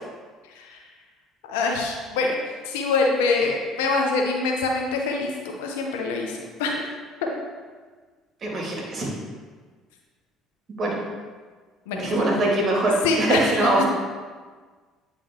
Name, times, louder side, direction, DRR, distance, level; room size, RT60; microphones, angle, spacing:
voice 1, 0.5-0.8 1.4-2.4 2.6-6.9 7.2-7.4 8.8-8.9 11.9-12.1 13.0-13.8, left 3 dB, 85° left, 1 dB, 0.8 m, -25 dB
voice 2, 8.4-9.1 10.8-11.0 11.9-13.9, right 2 dB, 45° right, -2 dB, 2.0 m, -23 dB
9.0 x 3.8 x 3.6 m, 1.5 s
supercardioid pair, 75°, 0 cm